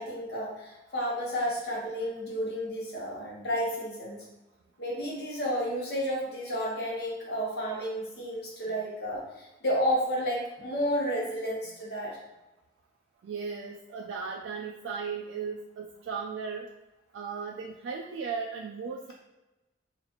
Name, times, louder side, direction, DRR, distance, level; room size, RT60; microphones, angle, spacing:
voice 1, 0.0-4.2 4.8-12.2, equal, 60° left, -4 dB, 1.1 m, -31 dB
voice 2, 13.2-16.7 17.1-19.1, right 5 dB, 85° right, 0 dB, 0.3 m, -36 dB
4.0 x 2.5 x 2.9 m, 1.1 s
head